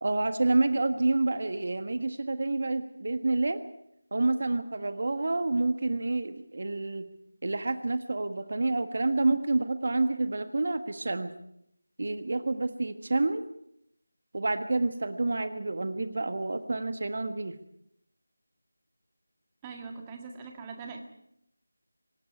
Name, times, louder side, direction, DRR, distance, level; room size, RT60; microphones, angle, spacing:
voice 1, 0.0-3.6 4.1-7.1 7.4-11.3 12.0-13.4 14.3-17.5, right 2 dB, 50° right, 10 dB, 1.5 m, -28 dB
voice 2, 19.6-21.0, right 5 dB, 15° right, 3 dB, 2.0 m, -42 dB
25.0 x 11.5 x 9.6 m, 0.77 s
figure-of-eight pair, 165°, 0 cm